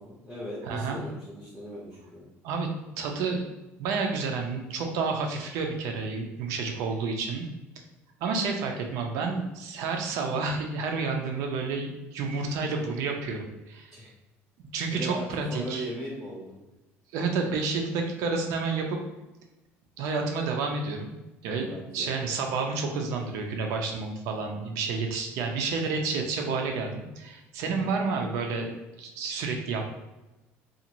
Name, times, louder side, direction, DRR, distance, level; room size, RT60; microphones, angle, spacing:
voice 1, 0.0-2.2 13.9-14.1 14.9-16.5 21.5-22.1 27.6-27.9, equal, 5° right, -8 dB, 0.7 m, -38 dB
voice 2, 0.6-1.0 2.4-2.7 3.0-3.4 3.8-7.5 8.2-14.1 14.6-15.8 17.1-19.0 20.0-21.1 21.4-21.7 21.9-29.9, right 4 dB, 75° right, 3 dB, 0.5 m, -30 dB
2.6 x 2.4 x 2.9 m, 1.0 s
cardioid pair, 120°, 5 cm